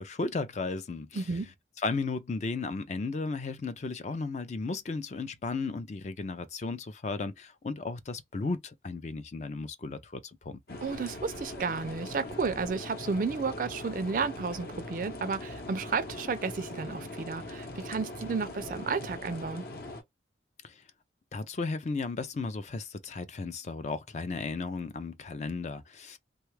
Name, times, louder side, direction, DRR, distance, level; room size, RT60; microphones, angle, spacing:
voice 1, 0.0-1.2 1.8-10.8 20.6-20.7 21.3-26.2, left 3 dB, 40° left, 0.4 m, -35 dB
voice 2, 1.1-1.5 10.8-19.6, right 5 dB, 45° right, 0.4 m, -32 dB
sound 1, 10.7-20.0, left 1 dB, 55° left, 0.8 m, -41 dB
3.2 x 2.3 x 3.1 m
head